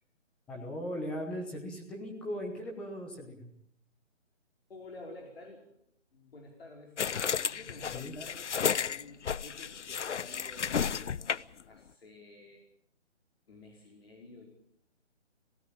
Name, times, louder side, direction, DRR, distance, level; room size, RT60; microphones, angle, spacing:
voice 1, 0.5-3.5 7.9-8.1, equal, 5° left, 1 dB, 0.9 m, -38 dB
voice 2, 4.7-5.8 6.1-12.6 13.5-14.5, left 2 dB, 55° left, 0 dB, 5.1 m, -51 dB
sound 1, 7.0-11.6, left 7 dB, 70° left, 0.8 m, -32 dB
19.5 x 17.5 x 8.8 m, 0.73 s
hypercardioid pair, 165°, 36 cm